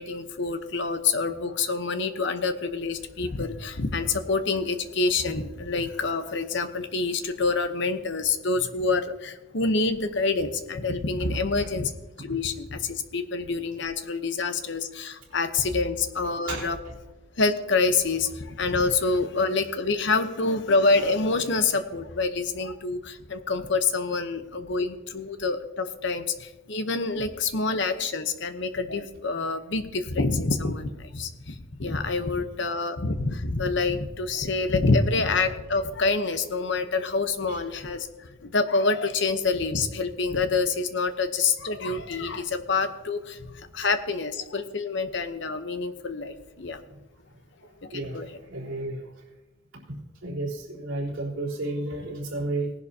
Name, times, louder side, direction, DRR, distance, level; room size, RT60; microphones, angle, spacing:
voice 1, 0.0-11.9 12.2-16.8 17.4-46.8 47.8-48.3, left 3 dB, 60° left, 8 dB, 0.9 m, -27 dB
voice 2, 11.2-11.7 16.5-16.7 37.5-37.6 47.9-49.2 50.2-52.7, right 2 dB, 65° right, -8 dB, 4.0 m, -32 dB
18.5 x 11.0 x 2.8 m, 1.1 s
head